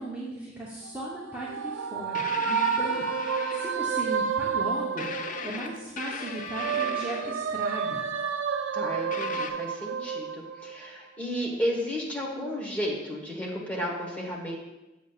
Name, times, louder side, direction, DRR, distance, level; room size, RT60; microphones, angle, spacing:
voice 1, 0.0-8.0, right 1 dB, 10° right, -7 dB, 0.8 m, -37 dB
sound 1, 0.8-5.8 6.2-11.0, right 6 dB, 80° right, 0.4 m, -30 dB
sound 2, 2.1-4.1 5.0-7.6 9.1-9.5, left 5 dB, 45° left, 0.4 m, -37 dB
voice 2, 8.7-14.6, equal, 10° left, -3 dB, 1.2 m, -33 dB
7.2 x 7.1 x 2.4 m, 1.0 s
head